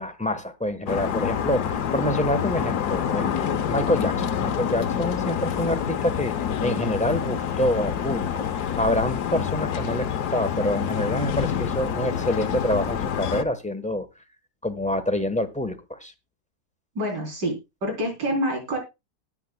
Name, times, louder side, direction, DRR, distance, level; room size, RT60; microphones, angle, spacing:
voice 1, 0.0-6.3 6.6-8.4 8.8-14.1 14.6-16.1, left 1 dB, 5° left, 8 dB, 0.8 m, -27 dB
sound 1, 0.9-13.4, left 8 dB, 70° left, 1.3 m, -27 dB
voice 2, 17.0-17.5 17.8-18.8, equal, 80° right, 1 dB, 4.3 m, -26 dB
19.0 x 8.3 x 2.2 m, 0.24 s
omnidirectional pair, 1.8 m